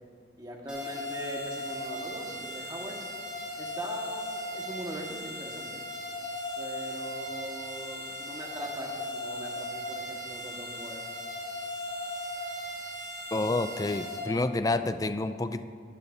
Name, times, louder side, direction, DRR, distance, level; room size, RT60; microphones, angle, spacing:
voice 1, 0.4-3.1 3.6-5.8 6.6-11.0, equal, 25° right, -1 dB, 1.7 m, -41 dB
sound 1, 0.7-14.2, left 1 dB, 5° right, 2.7 m, -37 dB
voice 2, 13.3-15.6, left 2 dB, 20° left, 10 dB, 0.4 m, -29 dB
23.0 x 11.5 x 2.8 m, 2.1 s
head